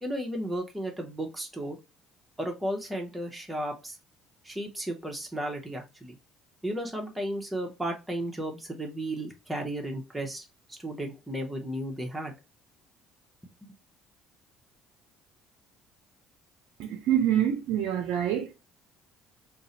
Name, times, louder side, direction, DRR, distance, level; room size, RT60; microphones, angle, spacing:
voice 1, 0.0-1.8 2.4-4.0 4.4-6.2 6.6-12.3, right 1 dB, 10° right, 0.8 m, -34 dB
voice 2, 16.8-18.5, right 10 dB, 70° right, 0.4 m, -26 dB
2.5 x 2.1 x 2.7 m
hypercardioid pair, 60°, 0 cm